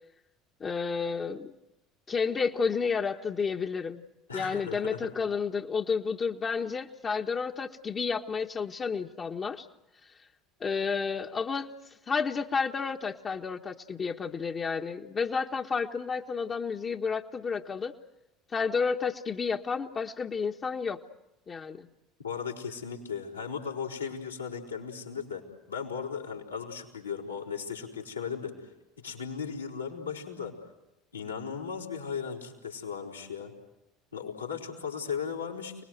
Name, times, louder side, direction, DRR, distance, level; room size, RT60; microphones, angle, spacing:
voice 1, 0.6-1.5 2.1-4.0 4.3-9.7 10.0-10.1 10.6-11.7 12.1-17.9 18.5-21.0 21.5-21.9, left 5 dB, 30° left, 2 dB, 1.4 m, -31 dB
voice 2, 4.3-5.1 22.2-30.6 31.1-33.5 34.1-35.8, left 6 dB, 85° left, -1 dB, 4.8 m, -37 dB
29.5 x 21.0 x 8.0 m, 0.94 s
figure-of-eight pair, 65°, 0 cm